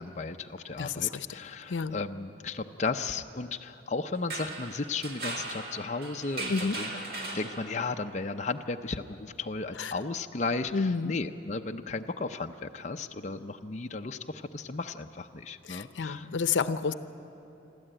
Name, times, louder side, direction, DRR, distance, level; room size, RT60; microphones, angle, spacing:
voice 1, 0.0-6.9 7.3-16.3, left 3 dB, 40° left, 5 dB, 0.5 m, -35 dB
voice 2, 0.8-1.4 1.7-2.0 6.5-6.8 9.8-9.9 10.7-11.1 15.6-16.9, left 5 dB, 90° left, 12 dB, 0.7 m, -30 dB
sound 1, 4.2-8.0, right 2 dB, 55° right, 2.2 m, -38 dB
27.0 x 12.5 x 8.9 m, 3.0 s
head